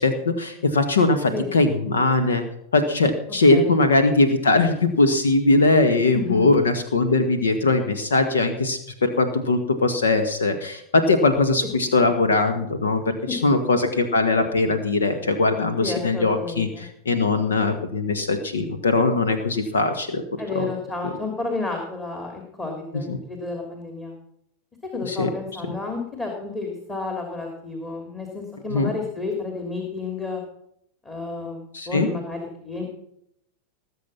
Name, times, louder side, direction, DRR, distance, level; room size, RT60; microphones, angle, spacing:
voice 1, 0.0-2.4 2.7-20.2 20.5-20.7 23.1-23.2 25.1-25.3 28.7-28.9 31.7-32.1, left 3 dB, 70° left, 8 dB, 1.5 m, -21 dB
voice 2, 3.5-3.8 6.1-6.5 12.0-12.1 13.3-13.8 15.8-16.9 20.4-24.1 24.9-30.4 31.0-32.8, left 3 dB, 15° left, 1 dB, 3.1 m, -31 dB
20.0 x 7.8 x 5.8 m, 0.74 s
figure-of-eight pair, 90°, 0 cm